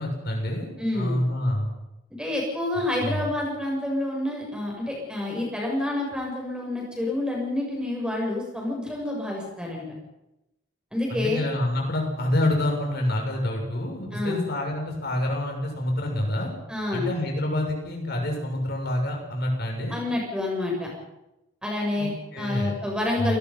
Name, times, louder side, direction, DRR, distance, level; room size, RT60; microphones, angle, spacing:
voice 1, 0.0-0.7 0.9-1.7 3.0-3.3 11.1-16.5 16.9-19.9 22.0-22.7 23.1-23.4, left 1 dB, 50° left, 1 dB, 6.8 m, -27 dB
voice 2, 0.8-1.2 2.2-9.9 10.9-11.4 14.1-14.4 16.7-17.1 19.9-20.9 21.6-22.1 22.4-23.4, left 2 dB, 5° right, -1 dB, 7.8 m, -28 dB
28.5 x 19.0 x 5.7 m, 0.93 s
head